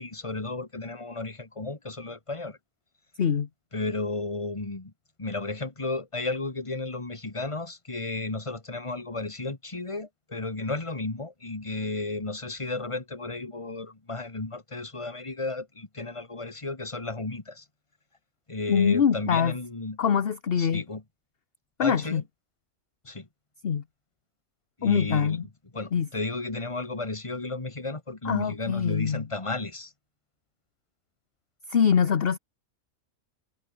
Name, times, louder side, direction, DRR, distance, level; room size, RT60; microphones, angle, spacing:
voice 1, 0.0-2.6 3.7-4.9 5.2-17.7 18.5-20.0 20.6-21.0 21.8-22.2 23.0-23.3 24.8-25.4 25.7-29.9, left 3 dB, 20° left, 2.0 m, -33 dB
voice 2, 18.7-19.5 20.0-20.8 21.8-22.2 23.6-23.8 24.8-25.5 25.9-26.1 28.2-29.3 31.7-32.4, left 7 dB, 50° left, 1.1 m, -24 dB
omnidirectional pair, 1.4 m